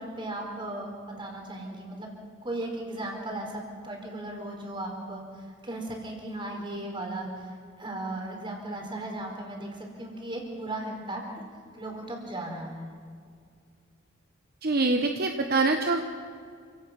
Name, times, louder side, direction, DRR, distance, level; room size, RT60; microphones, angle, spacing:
voice 1, 0.0-2.1 2.4-5.2 5.6-7.3 7.8-11.2 11.8-12.9, right 1 dB, 25° right, 1 dB, 4.3 m, -36 dB
voice 2, 14.6-16.0, right 3 dB, 50° right, 4 dB, 1.1 m, -24 dB
28.0 x 17.0 x 5.9 m, 2.1 s
head